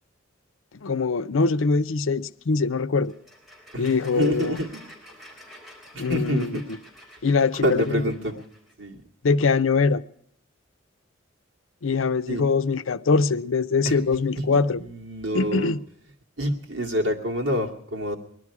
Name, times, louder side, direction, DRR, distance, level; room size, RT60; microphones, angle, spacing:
voice 1, 0.8-3.1 3.7-4.6 6.0-6.6 7.2-8.0 9.2-10.0 11.8-14.8 15.3-15.8, left 4 dB, 80° left, 0.6 m, -23 dB
sound 1, 3.0-8.7, left 1 dB, ahead, 4.3 m, -48 dB
voice 2, 3.7-4.8 5.9-6.6 7.6-8.3 8.8-9.0 12.3-12.4 13.8-14.0 14.4-15.7 16.4-18.1, equal, 65° right, 2.3 m, -27 dB
20.5 x 12.0 x 4.8 m
head